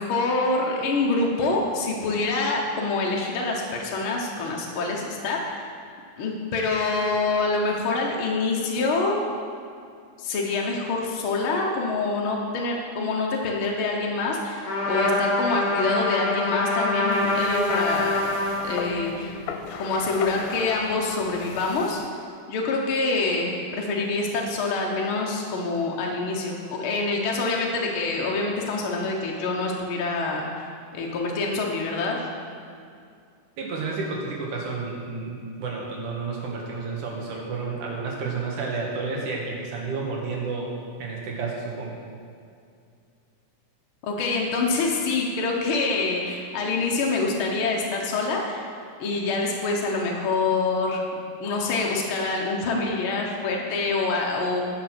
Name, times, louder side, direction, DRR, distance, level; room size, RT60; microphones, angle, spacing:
voice 1, 0.0-5.7 6.2-9.2 10.2-18.4 18.6-19.4 19.8-22.0 22.5-30.6 30.9-32.2 44.0-48.6 49.0-54.6, left 3 dB, 65° left, -1 dB, 1.3 m, -26 dB
Trumpet, 14.6-19.2, left 2 dB, 35° left, 2.0 m, -25 dB
sound 1, 17.1-22.1, left 6 dB, 85° left, 2.2 m, -37 dB
voice 2, 33.6-40.7 41.0-42.0, right 4 dB, 70° right, -2 dB, 2.9 m, -31 dB
10.5 x 6.6 x 6.1 m, 2.4 s
omnidirectional pair, 3.7 m